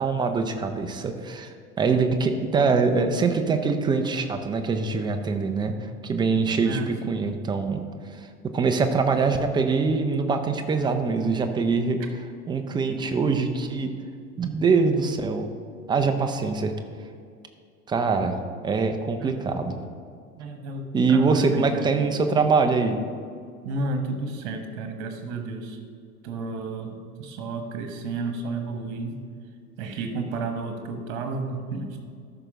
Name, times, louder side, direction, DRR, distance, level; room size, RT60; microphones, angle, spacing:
voice 1, 0.0-7.8 8.2-8.3 8.5-12.0 12.5-14.0 14.4-15.5 15.9-16.8 17.9-18.4 18.6-19.7 20.9-23.0, right 4 dB, 10° right, 5 dB, 0.5 m, -23 dB
voice 2, 6.6-7.1 19.2-19.4 20.4-22.0 23.6-25.8 26.2-29.2 29.8-32.0, right 3 dB, 50° right, 5 dB, 1.5 m, -32 dB
13.5 x 5.9 x 3.7 m, 2.2 s
figure-of-eight pair, 85°, 44 cm